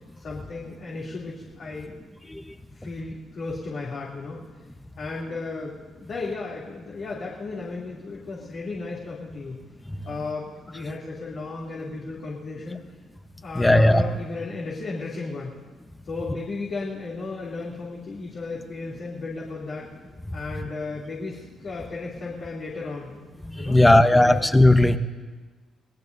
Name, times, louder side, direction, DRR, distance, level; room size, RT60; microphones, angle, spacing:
voice 1, 0.2-1.9 2.7-4.4 5.0-9.5 10.0-12.8 13.4-15.5 16.0-19.9 20.3-23.1 23.6-24.4, left 3 dB, 60° left, -5 dB, 2.9 m, -34 dB
voice 2, 13.6-14.0 23.6-25.0, left 1 dB, 10° left, 9 dB, 0.9 m, -16 dB
26.5 x 18.5 x 2.7 m, 1.3 s
cardioid pair, 90°, 0 cm